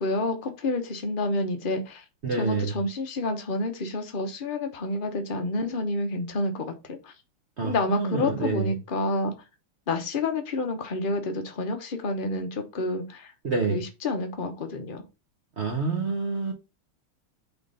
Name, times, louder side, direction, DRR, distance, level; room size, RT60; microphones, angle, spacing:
voice 1, 0.0-2.0 2.3-7.1 7.6-9.3 9.9-13.3 13.7-15.0, left 2 dB, 80° left, 0.4 m, -29 dB
voice 2, 2.2-2.8 7.6-8.7 13.4-13.8 15.6-16.5, right 4 dB, 50° right, 0.8 m, -27 dB
5.8 x 3.7 x 5.4 m
omnidirectional pair, 2.4 m